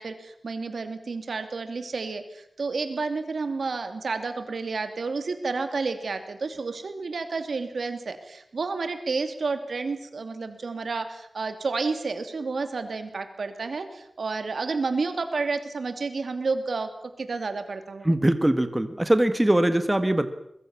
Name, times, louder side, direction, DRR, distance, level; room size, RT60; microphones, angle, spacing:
voice 1, 0.0-16.9 17.2-18.1, right 4 dB, 80° right, 8 dB, 2.9 m, -30 dB
voice 2, 18.0-20.3, right 1 dB, 15° right, 10 dB, 1.7 m, -22 dB
23.5 x 21.5 x 7.3 m, 0.73 s
wide cardioid pair, 105°, 0 cm